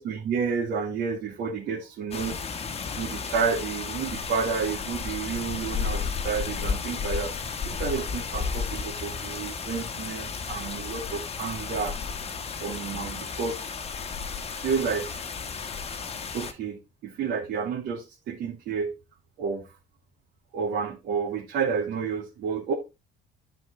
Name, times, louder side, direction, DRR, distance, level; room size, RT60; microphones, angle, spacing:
voice 1, 0.0-2.4 3.0-7.3 7.6-11.9 12.6-13.8 14.5-15.3 16.0-16.1 16.3-18.9 19.4-19.7 20.5-22.7, right 6 dB, 75° right, 2.5 m, -30 dB
sound 1, 2.1-16.5, left 5 dB, 35° left, 1.2 m, -33 dB
10.5 x 4.8 x 4.2 m
cardioid pair, 110°, 17 cm